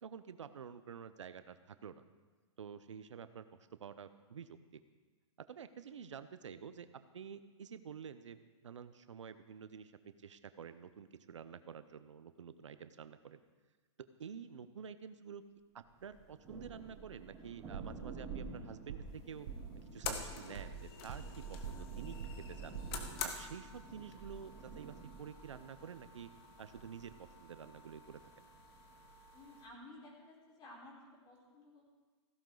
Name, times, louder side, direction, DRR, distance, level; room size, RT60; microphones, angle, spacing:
voice 1, 0.0-2.0 2.6-3.5 3.7-4.8 5.4-6.9 7.1-13.4 14.2-15.4 15.7-19.5 19.8-22.8 23.2-26.3 26.6-28.2, right 7 dB, 90° right, 12 dB, 0.7 m, -49 dB
Thunder, 16.0-29.2, right 4 dB, 20° right, 3.9 m, -51 dB
sound 1, 17.7-18.0 18.3-18.6 18.9-19.2 19.4-19.7 20.0-20.3 20.5-21.4 21.6-21.9 22.2-22.5 22.7-23.0, right 8 dB, 65° right, 1.6 m, -45 dB
sound 2, 19.1-29.7, left 6 dB, 55° left, 1.5 m, -49 dB
voice 2, 29.3-30.9 31.2-32.0, left 1 dB, 30° left, -3 dB, 4.6 m, -55 dB
15.5 x 11.5 x 3.9 m, 1.4 s
hypercardioid pair, 125°, 15 cm